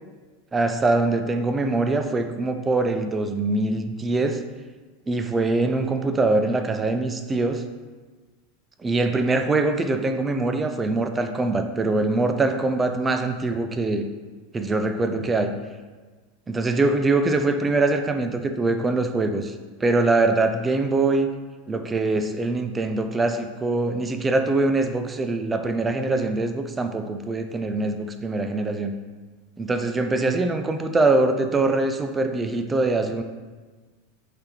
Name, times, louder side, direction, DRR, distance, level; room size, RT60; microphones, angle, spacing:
voice 1, 0.5-4.4 5.1-7.6 8.8-14.1 14.5-15.5 16.5-19.5 19.8-21.3 21.7-29.0 29.6-33.2, right 2 dB, 15° right, 7 dB, 0.4 m, -23 dB
4.9 x 3.4 x 3.0 m, 1.4 s
supercardioid pair, 120°, 0 cm